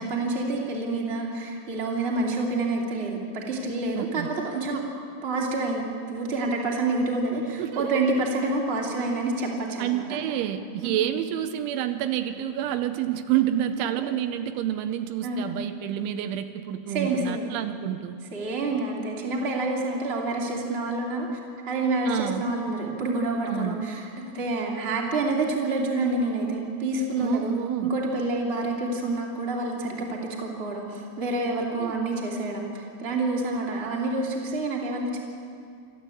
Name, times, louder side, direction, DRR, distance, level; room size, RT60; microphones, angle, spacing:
voice 1, 0.0-4.8 5.2-5.8 6.1-10.2 10.8-11.0 14.0-14.1 15.2-15.4 16.9-17.4 18.3-21.4 21.7-24.1 24.3-27.5 27.8-35.2, right 2 dB, 20° right, -2 dB, 2.1 m, -28 dB
voice 2, 4.0-4.3 7.6-8.0 9.8-18.2 22.1-22.4 23.5-23.9 27.2-27.9 31.8-32.0, right 11 dB, 80° right, 9 dB, 3.1 m, -28 dB
27.0 x 13.5 x 8.5 m, 2.4 s
omnidirectional pair, 5.5 m